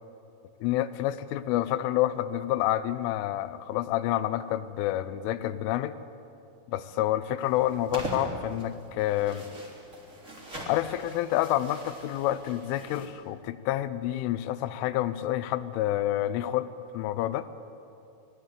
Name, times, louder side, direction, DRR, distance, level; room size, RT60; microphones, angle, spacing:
voice 1, 0.6-6.0 6.7-9.4 10.7-16.7 16.9-17.5, left 13 dB, 90° left, 14 dB, 3.3 m, -28 dB
sound 1, 7.4-13.1, right 1 dB, 20° right, 2.6 m, -41 dB
23.0 x 18.5 x 8.3 m, 2.7 s
omnidirectional pair, 5.6 m